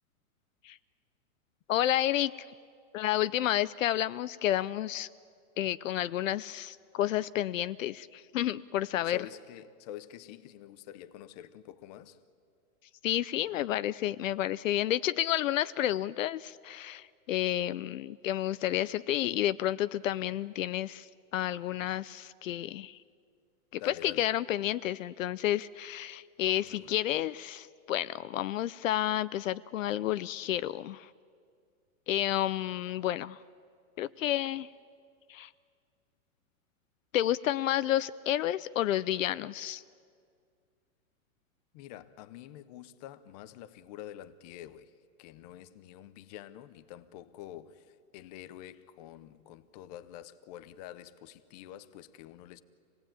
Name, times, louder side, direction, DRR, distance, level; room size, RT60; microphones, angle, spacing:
voice 1, 1.7-2.3 2.9-5.1 5.6-9.2 13.0-23.0 23.7-31.1 32.1-33.4 34.0-34.7 35.3-35.5 37.1-39.8, left 12 dB, 65° left, 0.6 m, -30 dB
voice 2, 9.0-12.2 23.8-24.3 26.5-27.0 41.7-44.9 45.2-52.6, left 12 dB, 30° left, 0.8 m, -47 dB
27.0 x 18.5 x 8.9 m
supercardioid pair, 165°, 43 cm